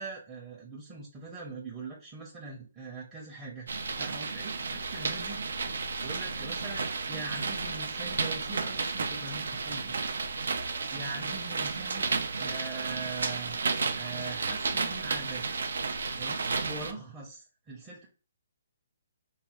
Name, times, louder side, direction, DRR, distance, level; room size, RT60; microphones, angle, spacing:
voice 1, 0.0-3.7 4.0-5.4 6.0-6.8 7.1-10.1 10.9-12.1 12.4-13.6 13.9-15.4 16.2-18.1, right 3 dB, 15° right, -5 dB, 0.6 m, -42 dB
sound 1, 3.7-16.9, right 4 dB, 75° right, 0.4 m, -32 dB
3.1 x 2.1 x 2.9 m, 0.36 s
hypercardioid pair, 155°, 0 cm